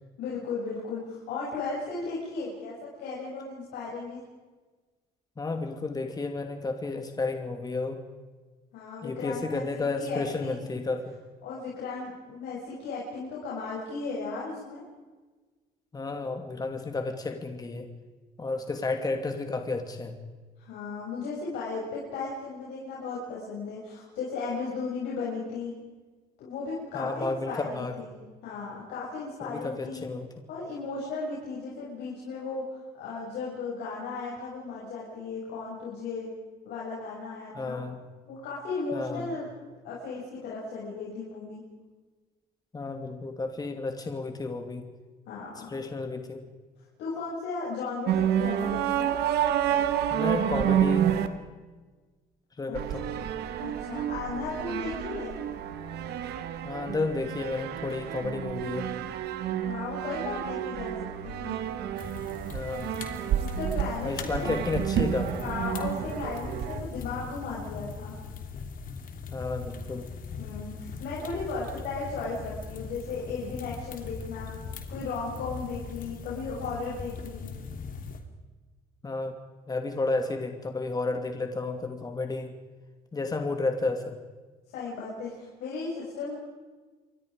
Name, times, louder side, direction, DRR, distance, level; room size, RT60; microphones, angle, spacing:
voice 1, 0.2-4.2 8.7-10.7 11.4-14.8 20.6-25.7 26.4-28.1 28.4-30.0 30.5-36.3 36.6-37.8 38.3-39.5 39.8-41.6 45.3-45.7 47.0-49.1 52.7-52.8 53.6-55.4 59.6-61.6 63.3-64.5 65.4-68.2 70.4-74.6 74.9-77.5 84.7-86.3, left 4 dB, 80° left, -6 dB, 7.3 m, -36 dB
voice 2, 5.4-8.0 9.0-11.2 15.9-17.9 18.4-20.2 26.9-28.0 29.4-30.3 37.5-38.0 38.9-39.3 42.7-44.9 45.7-46.4 50.1-51.1 52.6-53.1 56.6-58.9 62.5-62.9 64.0-65.4 69.3-70.1 79.0-79.3 79.7-82.5 83.1-84.2, left 3 dB, 20° left, 5 dB, 2.5 m, -32 dB
sound 1, 48.1-51.3 52.7-66.8, right 10 dB, 75° right, 1.8 m, -29 dB
sound 2, 62.0-78.2, left 5 dB, 55° left, 3.2 m, -40 dB
28.5 x 23.5 x 5.2 m, 1.3 s
cardioid pair, 110°, 17 cm